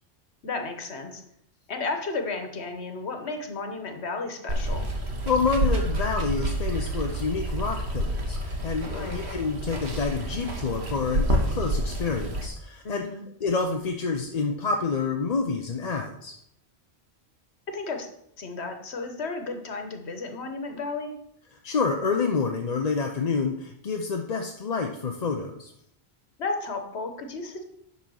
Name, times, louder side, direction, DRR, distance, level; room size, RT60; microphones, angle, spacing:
voice 1, 0.4-1.2 1.7-4.9 8.9-9.2 12.8-13.2 17.7-18.1 18.4-21.2 26.4-27.6, left 3 dB, 80° left, 5 dB, 1.5 m, -33 dB
Water, 4.5-12.5, right 1 dB, 80° right, 1.6 m, -28 dB
voice 2, 5.3-13.1 13.4-16.3 21.6-25.7, left 4 dB, 45° left, 3 dB, 0.7 m, -28 dB
10.5 x 4.2 x 6.3 m, 0.74 s
omnidirectional pair, 1.1 m